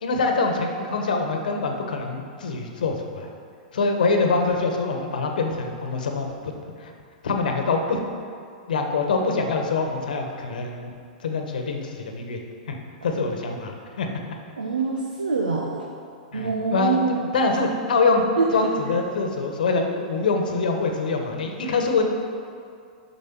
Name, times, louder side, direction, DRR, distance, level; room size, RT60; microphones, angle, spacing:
voice 1, 0.0-3.3 3.7-6.5 6.8-6.9 7.2-8.0 8.7-10.9 11.2-12.4 12.7-12.8 13.0-13.7 14.0-14.2 16.3-17.0 17.3-18.2 18.5-22.0, left 4 dB, 75° left, 3 dB, 1.2 m, -24 dB
voice 2, 14.6-15.8 16.3-17.2 18.4-18.5, right 4 dB, 90° right, -1 dB, 0.8 m, -24 dB
7.3 x 6.0 x 6.0 m, 2.3 s
hypercardioid pair, 110°, 5 cm